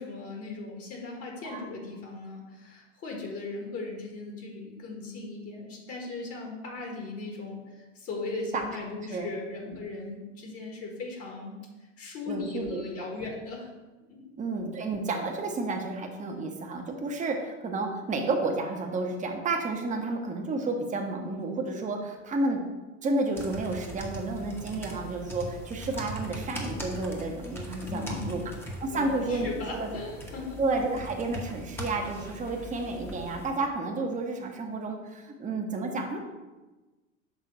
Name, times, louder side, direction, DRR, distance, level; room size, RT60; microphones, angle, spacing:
voice 1, 0.0-11.5 12.0-13.7 14.0-14.3 27.9-28.4 28.9-30.6, left 3 dB, 40° left, 1 dB, 1.6 m, -38 dB
voice 2, 12.3-12.8 14.4-22.6 23.0-28.5 28.8-30.0 30.6-36.2, right 3 dB, 20° right, 2 dB, 1.0 m, -31 dB
sound 1, 23.3-33.5, equal, 5° left, 1.1 m, -40 dB
6.2 x 3.7 x 5.2 m, 1.1 s
figure-of-eight pair, 85°, 37 cm